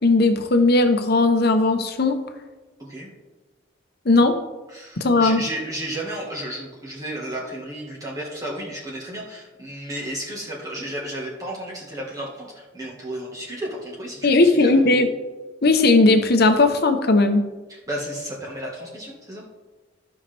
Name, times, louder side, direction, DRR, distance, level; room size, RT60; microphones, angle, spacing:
voice 1, 0.0-2.2 4.1-4.3 5.0-5.4 14.2-15.1 15.6-17.5, left 2 dB, 55° left, 7 dB, 0.9 m, -17 dB
voice 2, 2.8-3.1 4.7-14.9 17.7-19.4, right 1 dB, 20° right, -4 dB, 1.6 m, -33 dB
14.0 x 5.7 x 3.4 m, 1.2 s
head